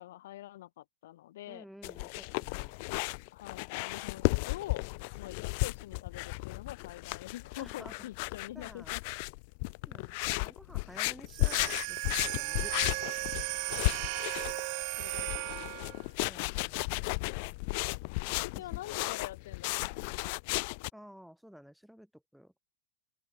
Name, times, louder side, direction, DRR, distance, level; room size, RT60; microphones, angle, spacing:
voice 1, 0.0-1.7 3.3-4.8 5.2-9.0 13.7-14.1 15.0-15.3 18.4-20.1, left 14 dB, 65° left, 1.5 m, -45 dB
voice 2, 1.5-2.8 7.6-8.1 8.5-8.9 9.8-12.8 16.3-16.7 18.3-18.8 20.9-22.8, equal, ahead, 2.6 m, -52 dB
sound 1, 1.8-20.9, left 30 dB, 40° left, 0.4 m, -34 dB
sound 2, 11.3-16.0, right 40 dB or more, 40° right, 0.5 m, -36 dB
open air
supercardioid pair, 170°, 0 cm